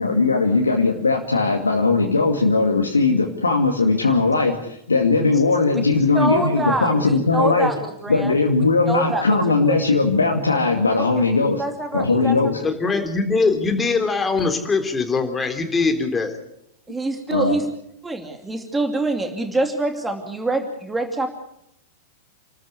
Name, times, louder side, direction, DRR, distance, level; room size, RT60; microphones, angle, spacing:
voice 1, 0.0-7.7 8.1-11.6 11.9-12.6 17.3-17.6, left 3 dB, 80° left, 1 dB, 2.3 m, -19 dB
voice 2, 6.1-8.3 8.9-9.2 9.7-9.8 11.6-12.5 16.9-17.6 18.0-21.3, right 2 dB, 10° right, 5 dB, 2.6 m, -25 dB
voice 3, 12.6-16.4, left 4 dB, 15° left, 5 dB, 3.7 m, -22 dB
29.5 x 13.5 x 8.3 m, 0.78 s
figure-of-eight pair, 95°, 0 cm